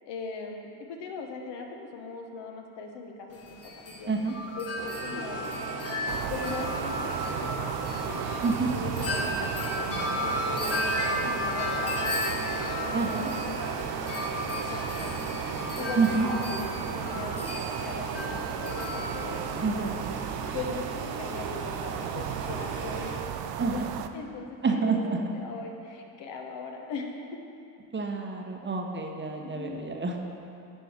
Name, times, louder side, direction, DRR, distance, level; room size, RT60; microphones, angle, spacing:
voice 1, 0.1-4.1 4.6-5.5 6.3-8.2 8.5-13.6 14.1-14.3 14.6-19.9 20.5-27.4 29.4-29.8, left 4 dB, 65° left, 2 dB, 1.1 m, -40 dB
Wind chime, 3.3-20.2, left 1 dB, 30° left, 1.3 m, -34 dB
sound 1, 4.8-23.1, right 3 dB, 70° right, 1.6 m, -38 dB
sound 2, 6.1-24.1, right 10 dB, 55° right, 0.5 m, -35 dB
voice 2, 12.9-13.3 15.9-16.3 19.6-20.1 23.6-23.9 24.6-25.2 27.9-30.3, right 4 dB, 25° right, 2 dB, 0.9 m, -28 dB
9.7 x 4.5 x 5.0 m, 2.6 s
hypercardioid pair, 65°, 47 cm